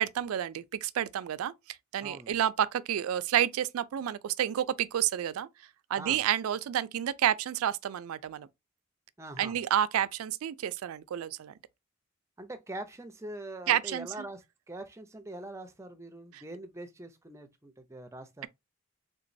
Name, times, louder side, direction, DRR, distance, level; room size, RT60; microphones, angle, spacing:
voice 1, 0.0-1.5 1.9-5.5 5.9-8.5 9.4-11.5 13.7-14.3 16.3-16.4, right 10 dB, 80° right, 0.3 m, -30 dB
voice 2, 2.0-2.3 6.0-6.2 9.2-9.6 12.4-14.4 14.7-18.5, right 1 dB, 15° right, 0.4 m, -43 dB
3.6 x 3.0 x 2.6 m
head